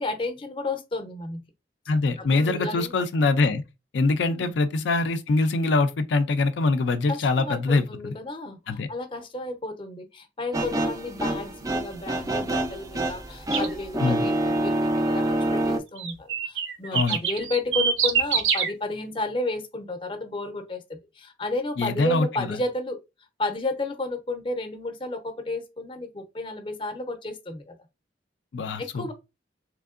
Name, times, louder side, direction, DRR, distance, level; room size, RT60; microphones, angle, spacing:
voice 1, 0.0-1.4 2.2-2.9 4.3-4.5 7.1-23.0 23.4-27.8 28.8-29.1, left 2 dB, 30° left, 0.6 m, -32 dB
voice 2, 1.9-3.6 3.9-7.8 8.7-8.9 14.0-14.2 16.9-17.2 21.8-22.6 28.5-29.1, left 3 dB, 80° left, 0.4 m, -23 dB
sound 1, 10.5-15.8, right 1 dB, 20° right, 0.3 m, -26 dB
sound 2, 13.5-13.7 16.0-18.7, right 7 dB, 90° right, 0.6 m, -24 dB
3.5 x 3.0 x 2.4 m
head